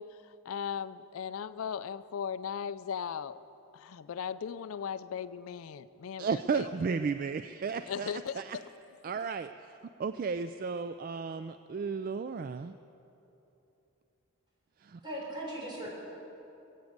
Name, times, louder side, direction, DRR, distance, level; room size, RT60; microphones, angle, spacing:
voice 1, 0.0-3.4 3.7-6.7 7.8-8.7, left 7 dB, 70° left, 14 dB, 0.4 m, -38 dB
voice 2, 6.2-8.6 9.0-9.7 10.0-12.7 14.8-15.0, right 5 dB, 40° right, 10 dB, 0.3 m, -34 dB
voice 3, 15.0-15.9, right 1 dB, 20° right, -5 dB, 4.6 m, -38 dB
21.5 x 8.3 x 7.9 m, 3.0 s
head